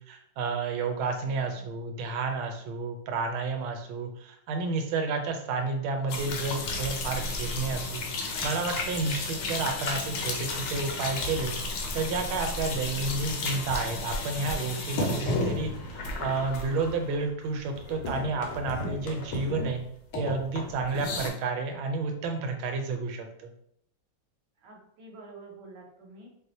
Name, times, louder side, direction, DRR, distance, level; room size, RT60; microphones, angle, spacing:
voice 1, 0.0-8.0 8.4-11.5 11.9-19.8 20.1-23.5, right 3 dB, 90° right, 4 dB, 1.4 m, -31 dB
sound 1, 6.1-17.4 17.7-19.8 20.1-21.3, left 2 dB, 70° left, 1.1 m, -33 dB
voice 2, 9.2-9.8 24.6-26.3, right 3 dB, 65° right, -1 dB, 1.3 m, -49 dB
4.6 x 2.0 x 2.7 m, 0.69 s
omnidirectional pair, 2.2 m